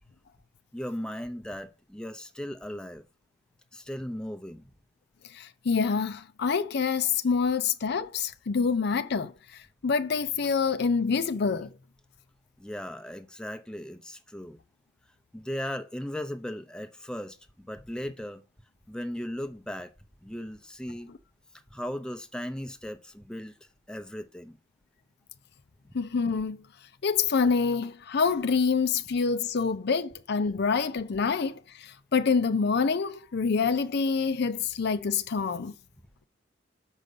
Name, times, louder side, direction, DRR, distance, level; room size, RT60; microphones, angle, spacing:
voice 1, 0.7-3.0 3.7-4.6 12.6-14.6 15.3-17.4 17.6-18.4 18.9-19.9 20.2-21.1 21.7-23.5 23.9-24.6, equal, 5° left, 0.7 m, -37 dB
voice 2, 5.3-11.7 25.9-26.6 27.0-35.7, left 5 dB, 55° left, 0.5 m, -26 dB
6.3 x 5.3 x 6.8 m
head